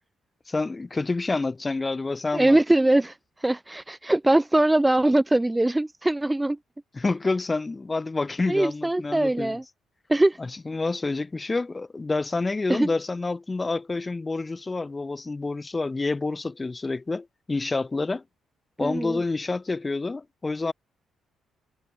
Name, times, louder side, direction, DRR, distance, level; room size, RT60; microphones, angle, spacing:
voice 1, 0.5-2.6 6.9-9.6 10.4-18.2 18.8-20.7, left 3 dB, 25° left, 3.8 m, -28 dB
voice 2, 2.3-3.1 3.4-6.6 8.5-9.6 10.1-10.4 12.7-12.9 18.8-19.2, right 1 dB, 10° right, 2.4 m, -22 dB
cardioid pair, 90°, 0 cm